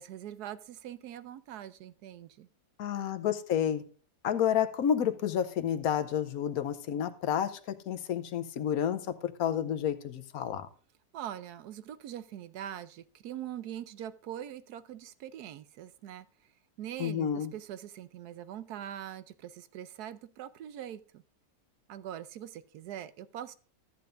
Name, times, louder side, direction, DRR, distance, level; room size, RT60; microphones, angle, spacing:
voice 1, 0.0-2.5 11.1-16.3 16.8-21.2 21.9-23.6, right 11 dB, 85° right, 14 dB, 1.2 m, -42 dB
voice 2, 2.8-3.8 4.2-10.7 17.0-17.5, left 9 dB, 70° left, 10 dB, 1.2 m, -30 dB
13.0 x 8.7 x 2.5 m, 0.40 s
omnidirectional pair, 1.6 m